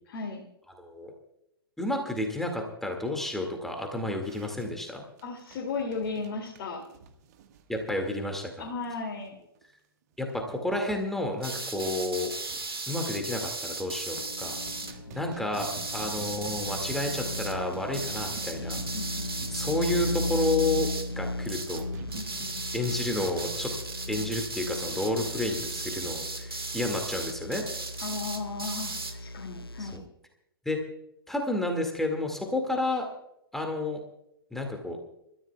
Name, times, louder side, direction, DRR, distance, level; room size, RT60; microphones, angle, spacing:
voice 1, 0.1-0.4 5.2-6.8 8.6-9.4 14.8-15.2 18.9-19.3 22.1-22.6 28.0-30.0, left 4 dB, 40° left, -2 dB, 2.6 m, -36 dB
voice 2, 0.8-1.1 1.8-5.0 7.7-8.7 10.2-12.3 12.9-14.6 15.1-18.8 19.5-20.9 21.2-21.9 22.7-23.7 24.1-27.6 29.8-30.0 30.7-30.8 31.3-33.1 33.5-34.0 34.5-35.0, left 2 dB, 5° left, 2 dB, 2.1 m, -31 dB
sound 1, 4.2-9.3 9.6-9.7 10.1-10.5 10.9-11.0 11.4-11.5 11.7-12.8 13.4-13.9 14.2-20.6 21.7-22.5 23.2-23.7, right 7 dB, 45° right, 1.5 m, -48 dB
sound 2, 11.4-14.9 15.5-17.5 17.9-21.1 21.4-21.8 22.1-29.1, right 3 dB, 80° right, 1.7 m, -36 dB
sound 3, 14.2-30.0, left 1 dB, 80° left, 0.9 m, -37 dB
29.5 x 14.0 x 2.3 m, 0.80 s
figure-of-eight pair, 110°, 12 cm